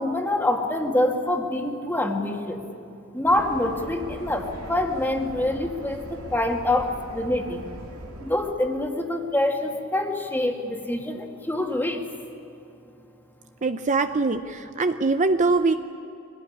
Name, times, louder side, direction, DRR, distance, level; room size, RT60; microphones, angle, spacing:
voice 1, 0.0-2.6 3.1-7.6 8.2-12.0, left 1 dB, 10° left, 2 dB, 2.1 m, -25 dB
sound 1, 3.2-8.4, right 1 dB, 80° right, 3.1 m, -39 dB
voice 2, 13.6-15.7, right 3 dB, 35° right, 8 dB, 0.6 m, -22 dB
23.5 x 17.5 x 9.9 m, 2.6 s
head